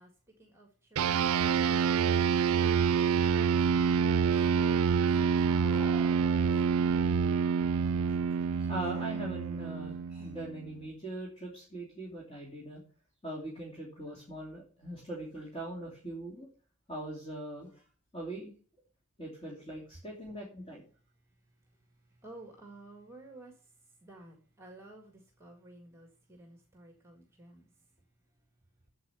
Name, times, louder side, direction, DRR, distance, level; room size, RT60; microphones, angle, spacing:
voice 1, 0.0-2.9 4.5-6.5 6.9-7.1 21.2-27.9, right 2 dB, 15° right, 3 dB, 1.8 m, -55 dB
sound 1, 1.0-10.7, right 6 dB, 80° right, 0.4 m, -27 dB
sound 2, 4.4-8.1, equal, 5° left, 1.1 m, -52 dB
voice 2, 8.6-12.8 13.2-16.5 16.9-17.8 18.1-18.5 19.2-20.8, right 1 dB, 25° left, -3 dB, 2.8 m, -41 dB
8.5 x 7.9 x 6.9 m, 0.41 s
head